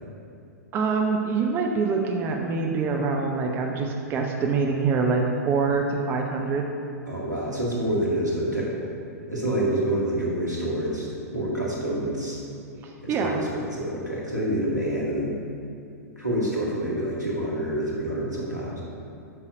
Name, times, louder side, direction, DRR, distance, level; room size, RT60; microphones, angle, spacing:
voice 1, 0.7-6.7 13.1-13.4, right 4 dB, 25° right, 2 dB, 0.6 m, -25 dB
voice 2, 7.1-8.8 9.3-11.1 11.3-12.4 13.0-15.4 16.2-18.8, right 1 dB, 90° right, -5 dB, 2.0 m, -27 dB
7.7 x 5.7 x 4.9 m, 2.6 s
figure-of-eight pair, 105°, 9 cm